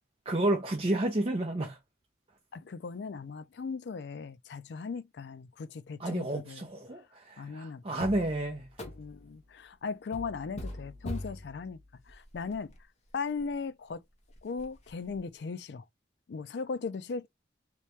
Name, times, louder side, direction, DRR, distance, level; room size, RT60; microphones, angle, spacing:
voice 1, 0.3-1.8 6.0-8.7, right 1 dB, 35° right, 0.6 m, -30 dB
voice 2, 2.5-7.0 7.4-8.0 8.9-12.7 13.1-14.0 14.4-15.8 16.3-17.3, left 5 dB, 70° left, 0.4 m, -38 dB
sound 1, 8.0-9.4 10.1-12.8 13.4-13.5 13.9-14.0 14.3-15.2, left 1 dB, 40° left, 1.1 m, -43 dB
3.3 x 3.0 x 3.1 m
head